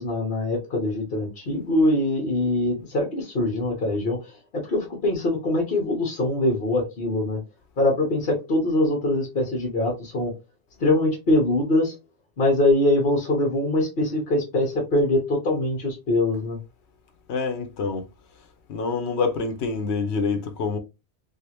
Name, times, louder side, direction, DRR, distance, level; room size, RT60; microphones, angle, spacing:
voice 1, 0.0-7.4 7.8-10.3 10.8-11.9 12.4-16.6, left 1 dB, 60° left, 1.2 m, -23 dB
voice 2, 17.3-18.0 18.7-20.8, left 4 dB, 85° left, 1.0 m, -26 dB
3.4 x 2.5 x 2.9 m
omnidirectional pair, 1.1 m